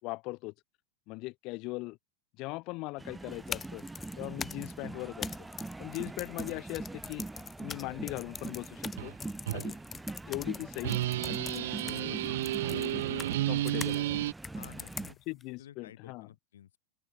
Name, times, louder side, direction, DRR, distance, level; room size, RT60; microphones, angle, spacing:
voice 1, 0.0-0.5 1.1-2.0 2.4-3.8 4.2-5.3 5.8-7.3 7.6-9.1 9.5-9.8 10.2-12.2 12.7-14.1 15.3-16.3, left 24 dB, 50° left, 3.3 m, -40 dB
sound 1, 3.0-15.1, right 2 dB, 10° right, 2.7 m, -42 dB
sound 2, 3.3-14.0 14.4-15.4, left 6 dB, 20° left, 2.1 m, -43 dB
sound 3, 9.0-9.1 9.5-9.7 10.8-14.3, right 15 dB, 70° right, 0.9 m, -31 dB
voice 2, 14.5-16.8, left 11 dB, 85° left, 3.8 m, -53 dB
open air
hypercardioid pair, 120°, 0 cm